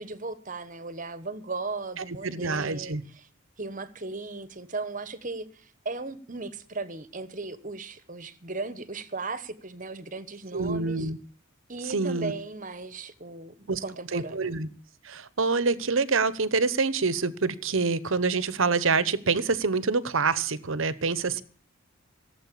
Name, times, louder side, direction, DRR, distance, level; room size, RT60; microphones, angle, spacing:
voice 1, 0.0-3.3 3.6-11.1 11.7-14.5, right 3 dB, 35° right, 1.2 m, -37 dB
voice 2, 2.0-3.0 10.5-11.2 11.8-12.3 13.7-13.8 14.1-14.7 15.0-21.4, right 4 dB, 65° right, 1.0 m, -26 dB
17.0 x 7.9 x 8.4 m
head